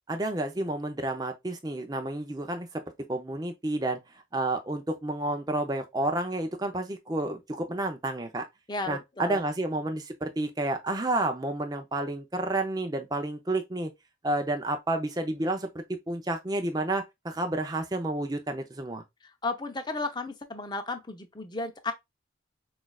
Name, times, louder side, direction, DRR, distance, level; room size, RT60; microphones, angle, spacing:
voice 1, 0.1-2.8 3.1-8.5 8.9-13.9 14.2-19.0, right 2 dB, 20° right, 0.5 m, -30 dB
voice 2, 8.7-9.4 19.4-21.9, left 3 dB, 20° left, 0.6 m, -33 dB
6.0 x 2.5 x 2.3 m
head